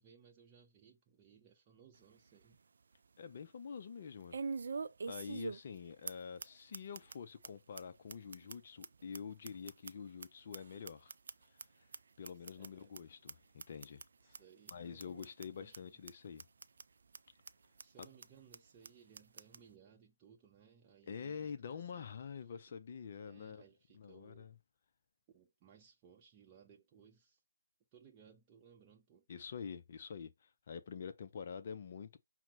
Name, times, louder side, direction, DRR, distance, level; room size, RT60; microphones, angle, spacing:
voice 1, 0.0-2.6 12.6-13.0 14.2-16.0 17.8-22.2 22.5-22.6 23.2-24.6 25.3-27.4 27.9-29.2, right 7 dB, 20° right, 0.7 m, -63 dB
sound 1, 1.9-2.0 2.5-2.6 4.3-5.8 6.1-6.2 6.4-6.5 6.7-7.1 7.4-7.5 7.8-7.9 8.1-10.3 10.5-11.6 11.9-12.0 12.2-12.7 12.9-13.0 13.3-13.4 13.6-14.0 14.3-14.4 14.7-14.8 15.0-15.5 15.7-15.8 16.1-16.2 16.4-16.8 17.1-17.2 17.5-17.6 17.8-18.3 18.5-18.6 18.8-18.9 19.1-19.6, right 4 dB, 55° right, 0.4 m, -43 dB
voice 2, 3.2-4.4 5.0-11.1 11.4-11.9 12.2-14.4 14.7-16.4 21.1-23.6 23.9-24.5 29.3-32.2, left 6 dB, 40° left, 0.5 m, -47 dB
5.8 x 2.1 x 4.0 m
figure-of-eight pair, 150°, 0 cm